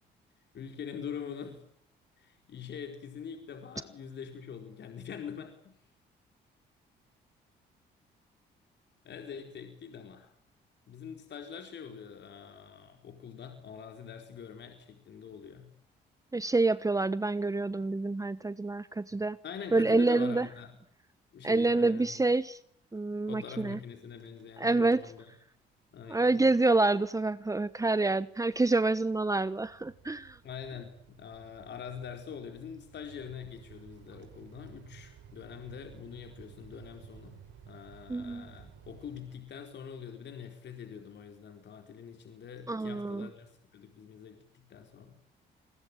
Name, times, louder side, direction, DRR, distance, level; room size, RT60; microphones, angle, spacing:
voice 1, 0.5-1.6 2.2-5.8 9.0-10.3 10.9-15.7 19.4-20.7 21.3-22.2 23.3-25.3 25.9-26.3 30.4-37.4 37.7-45.1, left 7 dB, 60° left, 5 dB, 4.6 m, -44 dB
voice 2, 16.3-19.4 19.7-20.5 21.4-22.6 22.9-23.8 24.6-25.1 26.1-30.4 38.1-38.5 42.7-43.3, right 3 dB, 15° right, 16 dB, 1.1 m, -27 dB
sound 1, 24.1-24.6 24.8-25.2 25.6-39.9, right 9 dB, 75° right, 6.1 m, -56 dB
28.5 x 21.5 x 9.0 m, 0.65 s
supercardioid pair, 70°, 20 cm